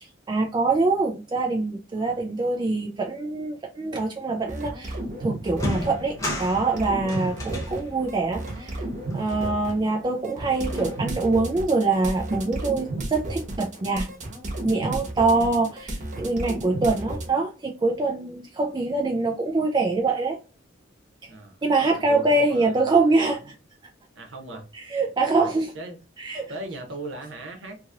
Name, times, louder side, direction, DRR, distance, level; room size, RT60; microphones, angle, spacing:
voice 1, 0.0-8.8 9.1-14.1 14.6-20.4 21.6-23.5 24.7-25.7 26.2-26.5, right 3 dB, 25° right, 0.4 m, -24 dB
sound 1, 4.5-6.1 6.4-17.3, right 1 dB, 40° right, 1.0 m, -33 dB
sound 2, 4.9-5.1 5.5-10.1 10.4-11.4, left 1 dB, 15° left, 0.9 m, -35 dB
voice 2, 22.1-23.5 24.1-24.7 25.3-26.0 26.5-27.8, right 2 dB, 75° right, 1.0 m, -39 dB
2.8 x 2.8 x 2.5 m
head